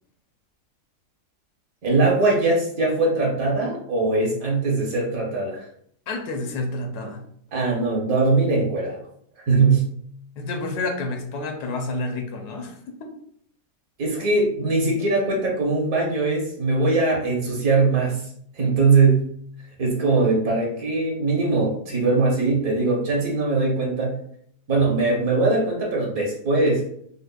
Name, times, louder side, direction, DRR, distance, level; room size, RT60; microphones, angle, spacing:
voice 1, 1.8-5.6 7.5-9.0 9.5-9.9 14.0-18.2 18.5-19.3 19.8-24.2 24.7-26.9, right 3 dB, 65° right, -2 dB, 1.3 m, -21 dB
voice 2, 6.1-7.2 10.4-13.1, left 2 dB, 80° left, 3 dB, 1.2 m, -29 dB
5.1 x 2.1 x 2.2 m, 0.65 s
omnidirectional pair, 1.7 m